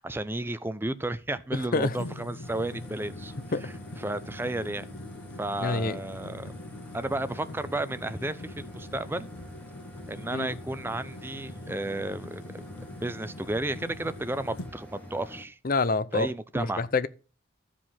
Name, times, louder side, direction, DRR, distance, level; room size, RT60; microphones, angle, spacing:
voice 1, 0.0-3.3 3.6-3.7 4.0-4.9 5.4-6.5 6.9-9.3 10.1-12.6 13.0-15.6 16.1-16.8, right 2 dB, 10° right, 0.5 m, -33 dB
voice 2, 1.5-2.0 3.5-3.7 5.6-6.0 10.3-10.5 15.6-17.1, left 3 dB, 40° left, 0.6 m, -27 dB
sound 1, 1.9-14.7, left 2 dB, 90° left, 1.0 m, -44 dB
sound 2, 2.4-15.4, left 1 dB, 10° left, 1.7 m, -46 dB
13.0 x 5.1 x 5.6 m
head